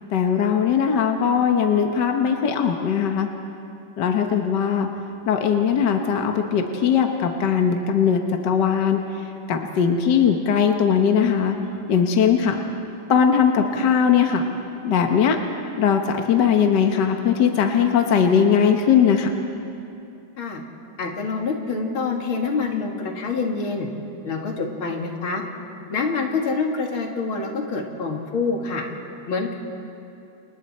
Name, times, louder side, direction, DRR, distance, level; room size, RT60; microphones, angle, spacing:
voice 1, 0.1-3.3 4.0-4.9 5.3-9.0 9.5-11.6 11.9-12.6 13.1-14.4 14.8-15.4 15.8-19.3, left 7 dB, 60° left, 4 dB, 1.7 m, -19 dB
voice 2, 21.0-23.9 24.2-25.4 25.9-28.8 29.3-29.5, left 4 dB, 85° left, 1 dB, 3.0 m, -26 dB
29.5 x 28.5 x 4.4 m, 2.7 s
omnidirectional pair, 2.2 m